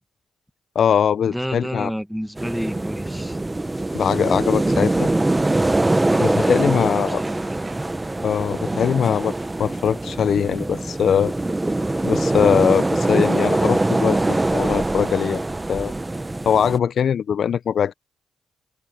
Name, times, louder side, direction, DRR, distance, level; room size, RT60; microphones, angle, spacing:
voice 1, 0.8-1.9 3.9-5.1 6.2-7.2 8.2-9.3 9.6-11.3 12.0-15.4 15.7-15.9 16.4-17.9, left 8 dB, 65° left, 0.4 m, -21 dB
voice 2, 1.3-3.4 6.1-7.4, equal, ahead, 1.4 m, -30 dB
sound 1, 2.4-16.8, right 2 dB, 15° right, 1.0 m, -23 dB
sound 2, 6.8-17.1, right 4 dB, 40° right, 4.6 m, -50 dB
cardioid pair, 80°, 0 cm